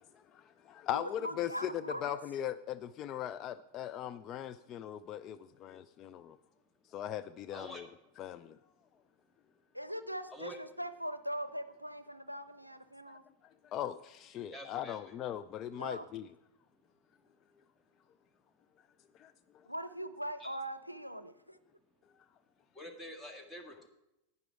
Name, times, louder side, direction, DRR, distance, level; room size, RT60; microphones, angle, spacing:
voice 1, 0.0-6.4 6.9-7.9 8.2-8.6 13.1-13.2 13.4-16.3 19.2-19.3, left 10 dB, 35° left, 12 dB, 0.3 m, -39 dB
voice 2, 0.9-2.2 9.7-13.2 15.8-16.1 19.7-21.6, equal, 90° right, 12 dB, 0.5 m, -41 dB
voice 3, 14.5-15.0 20.4-20.5 22.7-23.9, left 1 dB, 10° left, 4 dB, 1.6 m, -46 dB
11.0 x 9.5 x 4.7 m, 0.91 s
figure-of-eight pair, 90°, 0 cm